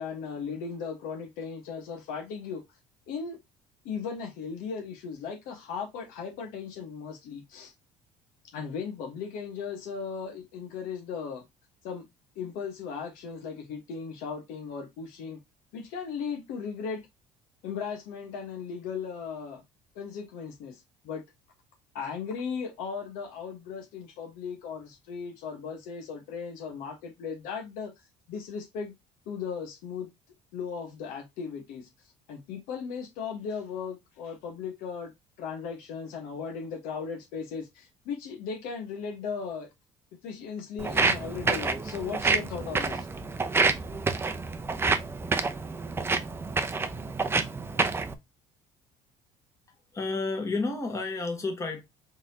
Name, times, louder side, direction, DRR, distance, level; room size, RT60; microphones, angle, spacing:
voice 1, 0.0-2.6 3.1-3.4 3.8-7.7 8.5-11.4 11.8-12.0 12.3-15.4 15.7-17.0 17.6-19.6 19.9-21.2 21.9-27.9 28.3-28.9 29.3-30.1 30.5-31.9 32.3-35.1 35.4-39.7 40.2-43.1, left 6 dB, 85° left, 1.3 m, -37 dB
Walk footsteps, 40.8-48.1, right 4 dB, 15° right, 0.5 m, -28 dB
voice 2, 49.9-51.8, left 3 dB, 20° left, 1.4 m, -30 dB
3.9 x 3.6 x 2.8 m
cardioid pair, 120°, 14 cm